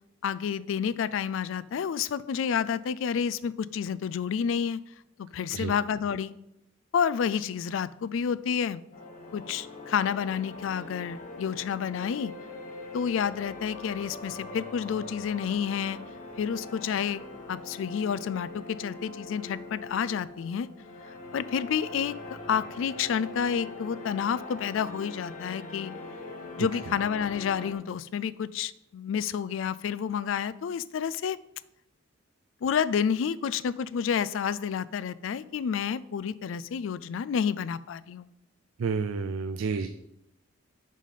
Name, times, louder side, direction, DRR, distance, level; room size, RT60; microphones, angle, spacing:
voice 1, 0.2-4.8 5.2-6.3 6.9-8.8 9.3-12.3 12.9-16.0 16.4-17.2 17.5-20.7 21.3-22.2 22.5-25.9 26.6-31.4 32.6-38.3, left 7 dB, 70° left, 17 dB, 0.3 m, -29 dB
sound 1, 8.9-27.7, left 2 dB, 40° left, 1.0 m, -42 dB
voice 2, 26.6-26.9 38.8-39.9, right 5 dB, 85° right, 9 dB, 0.4 m, -30 dB
5.3 x 5.0 x 5.6 m, 0.80 s
head